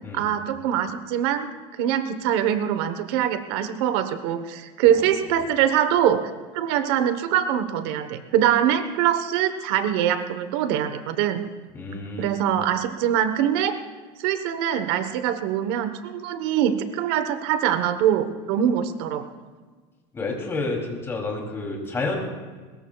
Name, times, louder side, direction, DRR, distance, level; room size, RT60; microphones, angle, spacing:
voice 1, 0.1-1.5 1.8-6.2 6.5-11.4 12.2-13.8 14.2-19.3, right 10 dB, 70° right, 10 dB, 1.1 m, -23 dB
voice 2, 11.7-12.3 20.1-22.2, left 3 dB, 15° left, 0 dB, 3.0 m, -30 dB
22.0 x 21.0 x 2.4 m, 1.4 s
cardioid pair, 160°, 14 cm